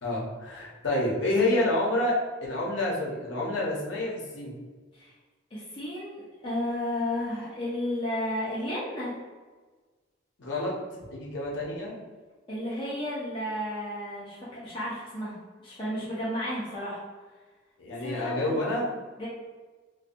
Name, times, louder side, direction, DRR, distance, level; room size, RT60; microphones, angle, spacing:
voice 1, 0.0-4.5 10.4-10.8 11.1-11.9 17.8-18.8, left 1 dB, 75° left, -3 dB, 0.7 m, -28 dB
voice 2, 5.5-9.2 12.5-15.3 15.6-17.0 18.0-18.6 19.2-19.3, left 1 dB, 25° left, -8 dB, 0.4 m, -33 dB
2.5 x 2.2 x 2.5 m, 1.3 s
head